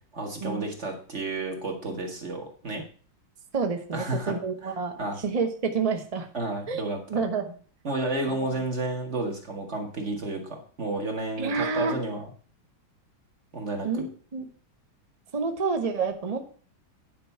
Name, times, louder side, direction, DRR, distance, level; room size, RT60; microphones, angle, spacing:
voice 1, 0.1-2.8 3.9-4.3 5.0-5.2 6.3-7.0 7.8-12.3 13.5-14.1, right 2 dB, 35° right, 2 dB, 1.9 m, -31 dB
voice 2, 3.5-6.3 6.7-6.8 7.1-7.5 8.3-8.6 11.4-12.0 13.8-14.5 15.3-16.4, right 5 dB, 65° right, 6 dB, 0.3 m, -29 dB
9.7 x 5.3 x 5.6 m, 0.43 s
omnidirectional pair, 2.3 m